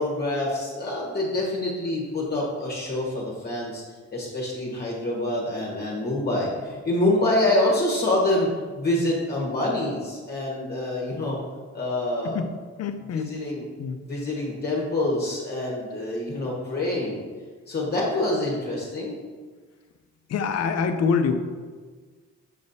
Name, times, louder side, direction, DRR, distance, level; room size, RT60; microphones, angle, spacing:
voice 1, 0.0-3.8 4.1-8.5 8.7-11.4 11.7-12.4 13.1-13.6 14.1-17.2 17.7-19.2, left 1 dB, 35° left, -4 dB, 1.3 m, -26 dB
voice 2, 12.2-13.3 13.8-14.0 20.3-21.4, left 5 dB, 55° left, 8 dB, 0.6 m, -26 dB
6.7 x 5.2 x 2.7 m, 1.5 s
cardioid pair, 90°, 30 cm